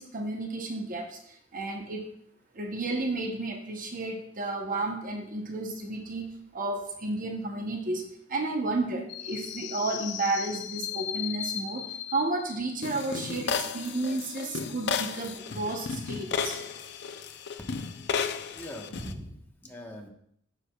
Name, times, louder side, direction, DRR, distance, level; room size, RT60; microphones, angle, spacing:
voice 1, 0.0-2.1 2.5-16.6, right 2 dB, 45° right, 3 dB, 0.9 m, -32 dB
sound 1, 9.1-19.1, left 6 dB, 60° left, 0.5 m, -34 dB
voice 2, 18.5-20.1, equal, 10° left, 0 dB, 1.1 m, -41 dB
9.8 x 6.5 x 2.3 m, 0.69 s
head